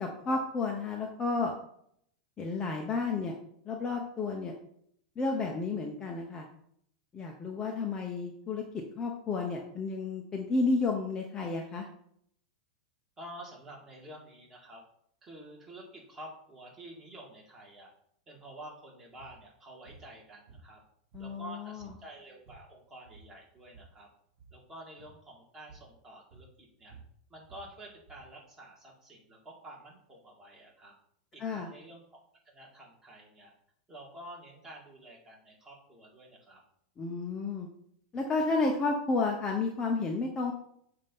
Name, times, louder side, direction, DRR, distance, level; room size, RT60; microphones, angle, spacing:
voice 1, 0.0-1.5 2.4-3.3 3.7-4.5 5.2-6.5 7.1-11.9 21.1-21.8 31.4-31.7 37.0-37.7 38.1-40.5, left 3 dB, 20° left, 1 dB, 0.7 m, -31 dB
voice 2, 13.2-14.8 15.2-17.9 18.3-20.8 21.2-24.1 24.5-26.9 27.3-30.9 31.3-32.2 32.5-33.5 33.9-36.6, right 1 dB, 15° right, -2 dB, 1.9 m, -49 dB
sound 1, 19.1-19.4 19.9-20.1 20.5-21.5 21.8-22.0 22.3-22.8 23.1-24.0 24.3-24.6 25.0-25.2 25.7-25.9 26.3-28.3, right 4 dB, 50° right, 2.7 m, -55 dB
7.3 x 2.8 x 5.3 m, 0.68 s
supercardioid pair, 145°, 4 cm